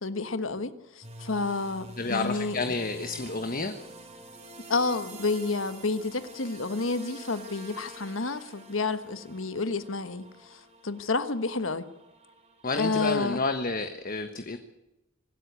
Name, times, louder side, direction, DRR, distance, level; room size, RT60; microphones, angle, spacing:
voice 1, 0.0-2.7 4.7-11.9 12.7-13.4, left 3 dB, 80° left, 11 dB, 1.5 m, -30 dB
sound 1, 1.0-13.6, right 1 dB, 35° right, 3.9 m, -47 dB
voice 2, 2.0-3.7 12.6-14.6, left 3 dB, 45° left, 7 dB, 1.3 m, -30 dB
25.0 x 13.0 x 9.6 m, 0.97 s
head